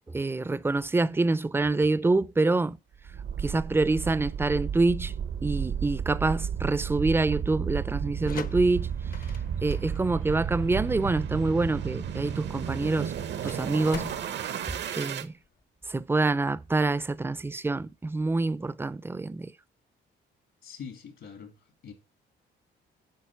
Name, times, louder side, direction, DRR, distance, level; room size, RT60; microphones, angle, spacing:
voice 1, 0.1-2.8 3.4-5.1 5.4-9.3 9.6-13.1 13.4-14.1 14.9-15.3 15.9-19.5, right 3 dB, 10° right, 0.4 m, -26 dB
sound 1, 3.0-15.3, right 8 dB, 65° right, 0.7 m, -33 dB
sound 2, 8.0-15.6, left 7 dB, 45° left, 0.7 m, -45 dB
voice 2, 20.6-21.9, left 6 dB, 70° left, 2.0 m, -44 dB
9.2 x 4.4 x 5.7 m
cardioid pair, 90°, 20 cm